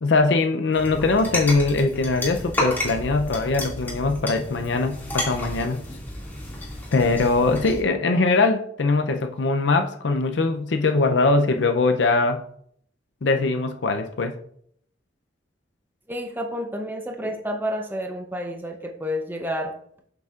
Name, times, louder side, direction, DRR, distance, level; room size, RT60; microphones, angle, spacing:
voice 1, 0.0-5.8 6.9-12.4 13.2-14.3, left 3 dB, 70° left, 6 dB, 0.5 m, -21 dB
sound 1, 0.7-7.8, left 1 dB, 10° left, 2.2 m, -31 dB
voice 2, 16.1-19.7, equal, 10° right, 3 dB, 0.7 m, -30 dB
8.0 x 6.9 x 2.4 m, 0.66 s
head